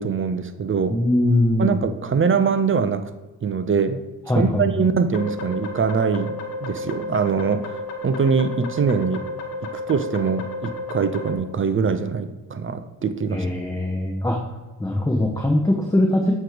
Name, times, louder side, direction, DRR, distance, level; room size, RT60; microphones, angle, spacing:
voice 1, 0.0-1.0 1.6-3.1 3.4-4.0 4.4-6.3 6.6-9.2 9.9-13.5, right 6 dB, 30° right, 10 dB, 0.6 m, -23 dB
voice 2, 0.9-1.8 4.3-4.6 13.3-14.4 14.8-16.3, left 1 dB, 5° left, 1 dB, 1.1 m, -21 dB
sound 1, 5.1-11.4, left 2 dB, 80° left, 1.1 m, -32 dB
7.5 x 3.3 x 5.0 m, 1.2 s
hypercardioid pair, 60°, 45 cm